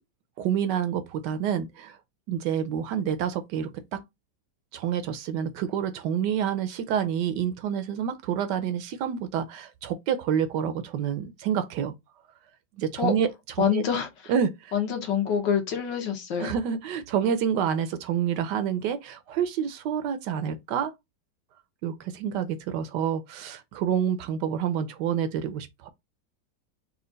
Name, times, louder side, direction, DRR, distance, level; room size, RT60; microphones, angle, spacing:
voice 1, 0.4-2.0 2.3-4.0 4.7-11.9 12.8-13.3 13.6-13.8 14.3-14.7 16.4-20.9 21.8-25.9, right 8 dB, 75° right, 1.1 m, -28 dB
voice 2, 13.6-14.3 14.7-16.5, left 8 dB, 75° left, 1.7 m, -26 dB
4.3 x 2.4 x 3.8 m
omnidirectional pair, 2.0 m